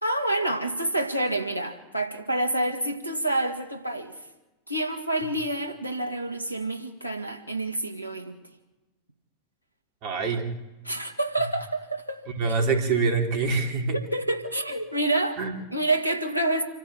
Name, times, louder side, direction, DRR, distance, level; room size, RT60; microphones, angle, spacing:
voice 1, 0.0-4.2 4.7-8.3 10.8-12.2 13.9-15.4 15.7-16.6, right 1 dB, 90° left, 6 dB, 2.1 m, -28 dB
voice 2, 10.0-10.5 12.4-14.0 15.4-15.5, right 4 dB, 40° right, 4 dB, 3.4 m, -25 dB
27.0 x 12.5 x 8.7 m, 1.1 s
figure-of-eight pair, 90°, 0 cm